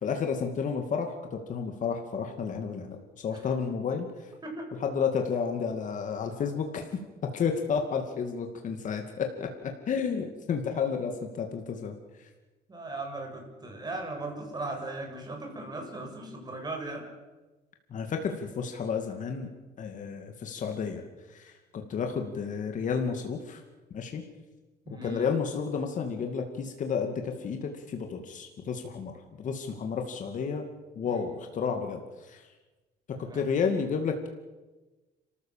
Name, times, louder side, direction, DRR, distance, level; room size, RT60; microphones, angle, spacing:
voice 1, 0.0-4.3 4.8-6.9 7.3-12.3 17.9-19.5 19.8-21.0 21.3-23.6 23.9-24.2 25.0-30.6 30.9-32.4 33.3-34.3, left 6 dB, 50° left, 4 dB, 2.5 m, -31 dB
voice 2, 4.4-4.8 10.7-10.8 12.7-17.1 24.9-25.3 31.0-31.2 33.1-33.4, right 2 dB, 25° right, 2 dB, 7.0 m, -38 dB
30.0 x 14.0 x 7.5 m, 1.2 s
cardioid pair, 110°, 17 cm